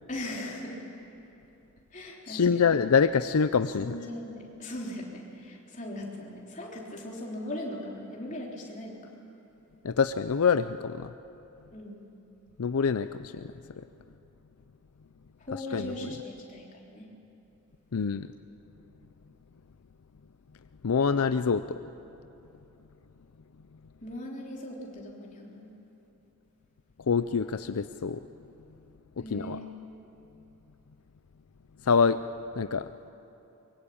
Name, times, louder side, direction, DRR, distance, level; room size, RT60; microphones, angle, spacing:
voice 1, 0.1-0.8 1.9-2.6 3.8-9.0 11.7-12.0 15.4-17.1 24.0-25.7 29.2-29.7, left 1 dB, 35° left, -2 dB, 3.8 m, -39 dB
voice 2, 2.3-4.0 9.8-11.1 12.6-13.9 15.7-16.1 17.9-18.3 20.8-21.8 27.1-28.3 29.3-29.6 31.8-32.2 32.5-32.9, left 5 dB, 85° left, 12 dB, 0.5 m, -26 dB
23.5 x 23.0 x 8.8 m, 3.0 s
head